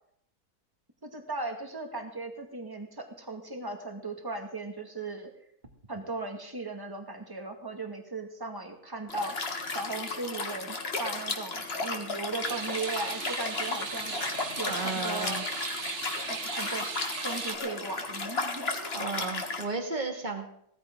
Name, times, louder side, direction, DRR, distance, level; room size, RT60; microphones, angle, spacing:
voice 1, 1.1-5.3 5.9-14.2 14.6-15.5 16.3-16.9 17.2-19.0, right 3 dB, 15° right, 4 dB, 2.1 m, -37 dB
Liquid, 9.1-19.6, left 3 dB, 40° left, 1.8 m, -34 dB
sound 1, 12.4-17.6, right 6 dB, 50° right, 1.3 m, -38 dB
voice 2, 14.7-15.4 18.9-20.5, right 3 dB, 30° right, 3 dB, 2.4 m, -33 dB
18.0 x 14.5 x 3.8 m, 0.70 s
omnidirectional pair, 1.6 m